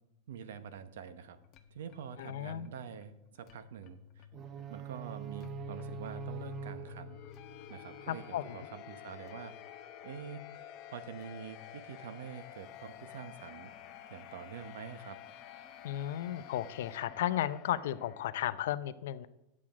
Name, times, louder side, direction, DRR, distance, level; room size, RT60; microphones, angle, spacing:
voice 1, 0.3-1.4 1.7-4.3 4.7-7.2 7.7-9.5 10.0-10.5 10.9-13.7 14.1-15.2, right 7 dB, 80° right, 12 dB, 0.8 m, -46 dB
sound 1, 0.5-18.6, left 10 dB, 40° left, 0.9 m, -51 dB
voice 2, 2.2-2.7 8.1-8.6 15.8-19.3, left 12 dB, 75° left, 15 dB, 0.5 m, -34 dB
sound 2, 4.3-8.3, right 8 dB, 30° right, 0.5 m, -45 dB
9.5 x 7.4 x 4.8 m, 0.90 s
supercardioid pair, 145°, 0 cm